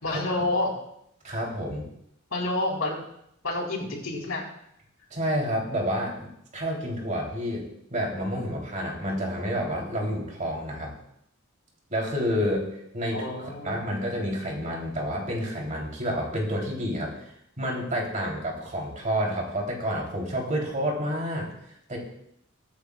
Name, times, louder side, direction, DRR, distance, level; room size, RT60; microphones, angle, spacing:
voice 1, 0.0-0.7 2.3-3.0 3.4-4.4 13.1-13.9, left 2 dB, 85° left, -2 dB, 4.0 m, -29 dB
voice 2, 1.2-1.9 5.1-7.6 7.9-10.9 11.9-12.7 12.9-17.1 17.6-21.5 21.9-22.0, equal, 40° right, -1 dB, 3.3 m, -29 dB
22.5 x 9.6 x 2.4 m, 0.75 s
head